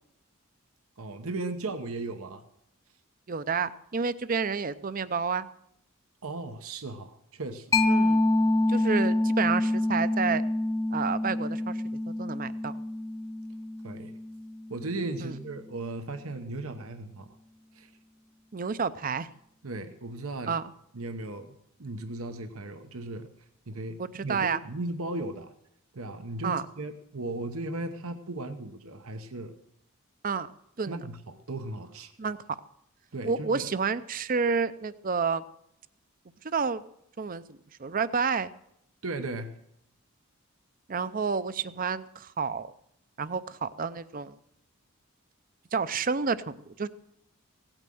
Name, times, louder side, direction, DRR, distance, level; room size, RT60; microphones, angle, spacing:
voice 1, 1.0-2.4 6.2-7.8 13.8-14.1 14.7-17.3 17.7-17.9 19.6-20.6 20.9-21.5 21.8-23.3 23.7-25.5 25.9-29.6 30.9-32.1 33.1-33.7 39.0-39.5, right 2 dB, 85° right, 8 dB, 1.0 m, -36 dB
voice 2, 3.3-5.5 7.9-8.2 8.7-10.4 10.9-11.8 12.2-12.7 15.2-15.3 18.5-19.3 20.5-20.6 24.0-24.6 26.4-26.7 30.2-30.5 30.8-31.0 32.2-32.4 33.2-35.4 36.4-36.8 37.2-38.5 40.9-42.7 43.2-44.3 45.7-46.9, right 5 dB, 40° right, 15 dB, 0.5 m, -30 dB
Mallet percussion, 7.7-15.0, left 2 dB, 15° left, 0.6 m, -27 dB
17.0 x 8.9 x 7.7 m, 0.76 s
head